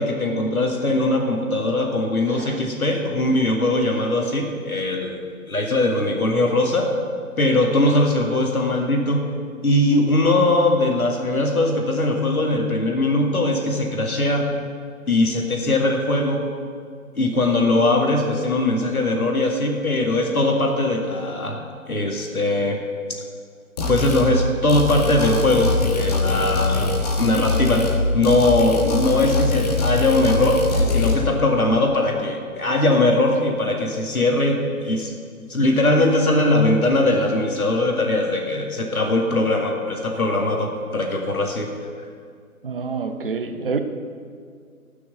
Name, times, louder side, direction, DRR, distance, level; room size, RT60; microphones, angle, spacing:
voice 1, 0.0-6.9 7.4-9.2 9.6-14.5 15.1-16.4 17.2-21.6 21.9-22.8 23.9-27.9 28.1-35.1 35.5-41.7, left 2 dB, 70° left, 1 dB, 2.0 m, -20 dB
voice 2, 2.3-2.6 42.6-43.8, right 5 dB, 40° right, 8 dB, 0.8 m, -27 dB
sound 1, 23.8-24.3 24.7-28.0 28.2-31.2, left 3 dB, 25° left, 1.4 m, -23 dB
13.5 x 6.2 x 7.8 m, 2.1 s
figure-of-eight pair, 140°, 44 cm